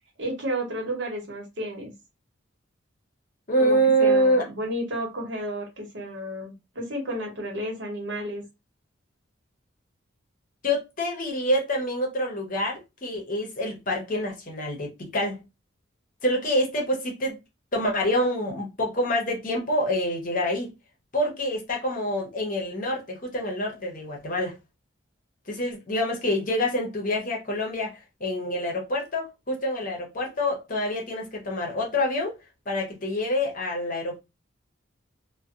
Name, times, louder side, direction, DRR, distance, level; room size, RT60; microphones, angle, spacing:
voice 1, 0.2-1.9 3.6-8.4, equal, 65° right, 1.0 m, -32 dB
voice 2, 3.5-4.5 10.6-15.4 16.2-17.4 17.7-20.7 21.1-24.6 25.5-32.4 32.7-34.2, equal, 40° left, 0.8 m, -26 dB
2.6 x 2.2 x 2.4 m
head